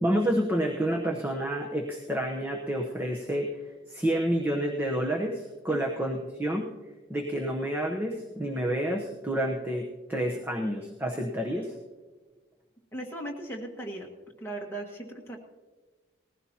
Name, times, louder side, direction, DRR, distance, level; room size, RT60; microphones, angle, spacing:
voice 1, 0.0-3.5 3.9-6.7 7.1-11.7, right 1 dB, 10° right, 0 dB, 0.9 m, -29 dB
voice 2, 12.9-14.1 14.4-15.4, right 1 dB, 10° left, -2 dB, 1.7 m, -37 dB
19.5 x 15.5 x 2.9 m, 1.3 s
head